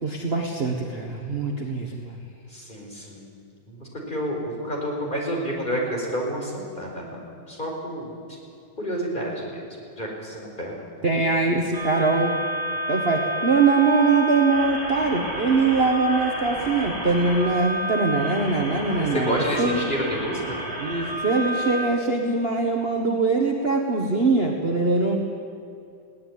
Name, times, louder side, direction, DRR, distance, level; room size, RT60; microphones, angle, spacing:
voice 1, 0.0-2.2 11.0-12.3 12.9-19.9 20.8-25.2, right 3 dB, 30° right, 1 dB, 1.7 m, -22 dB
voice 2, 2.5-3.3 3.7-7.2 7.5-8.1 8.8-9.6 10.0-10.7 19.0-20.6, equal, 25° left, -2 dB, 5.1 m, -29 dB
sound 1, 11.7-21.8, equal, 55° right, 6.3 m, -30 dB
21.0 x 17.0 x 9.6 m, 2.6 s
omnidirectional pair, 2.2 m